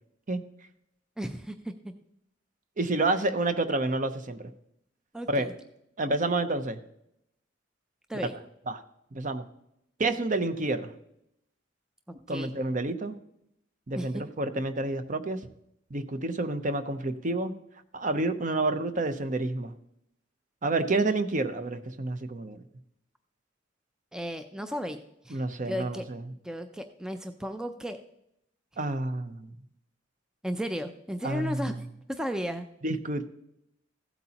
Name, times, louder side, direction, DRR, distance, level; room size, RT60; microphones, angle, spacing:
voice 1, 1.2-1.9 5.1-5.5 8.1-8.3 12.3-12.5 13.9-14.2 24.1-26.0 26.4-28.0 30.4-31.8 32.1-32.7, equal, 5° right, 7 dB, 0.4 m, -34 dB
voice 2, 2.8-4.5 5.3-5.5 6.0-6.8 8.7-8.8 9.1-9.4 10.0-10.9 12.3-13.2 13.9-15.4 15.9-17.5 17.9-19.7 20.6-22.6 25.3-26.2 28.8-29.5 31.2-31.7 32.8-33.3, right 2 dB, 40° right, 10 dB, 0.7 m, -29 dB
15.0 x 8.1 x 2.9 m, 0.79 s
head